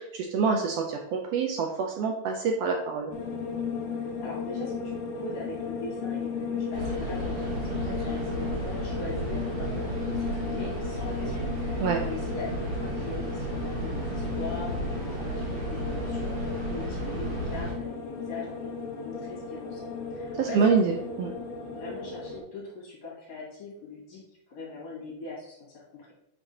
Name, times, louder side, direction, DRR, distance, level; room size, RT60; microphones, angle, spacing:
voice 1, 0.0-3.1 11.8-12.0 20.4-21.3, right 5 dB, 85° right, 2 dB, 1.4 m, -26 dB
sound 1, 3.1-22.4, left 5 dB, 80° left, 2.4 m, -35 dB
voice 2, 3.9-20.6 21.0-21.4 21.7-24.2 24.5-26.1, left 3 dB, 65° left, -4 dB, 3.4 m, -42 dB
sound 2, 6.7-17.7, right 2 dB, 60° right, 2.3 m, -33 dB
8.6 x 4.7 x 2.8 m, 0.85 s
omnidirectional pair, 3.6 m